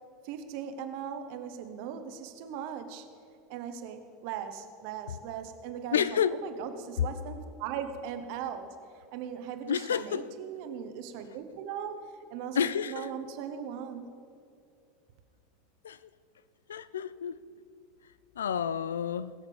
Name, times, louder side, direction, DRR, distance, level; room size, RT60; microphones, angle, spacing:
voice 1, 0.2-3.0 3.5-8.7 9.1-12.0 12.3-14.1, right 8 dB, 55° right, 1.2 m, -39 dB
voice 2, 5.9-6.4 9.7-10.3 12.6-13.1 15.8-16.1 16.7-17.4 18.4-19.3, left 8 dB, 75° left, 0.5 m, -30 dB
21.5 x 7.2 x 5.2 m
figure-of-eight pair, 80°, 0 cm